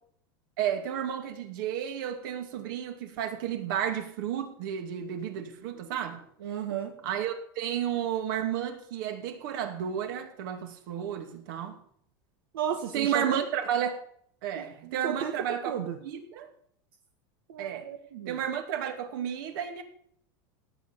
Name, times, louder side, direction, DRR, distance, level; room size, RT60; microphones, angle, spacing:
voice 1, 0.6-6.2 7.0-11.8 12.9-14.0 14.4-16.5 17.6-17.9 18.3-19.8, right 9 dB, 65° right, 2.5 m, -32 dB
voice 2, 6.4-6.9 12.5-13.2 14.6-15.3 15.7-16.0 17.5-18.4, right 9 dB, 85° right, 1.7 m, -34 dB
17.0 x 7.9 x 7.0 m
supercardioid pair, 145°, 12 cm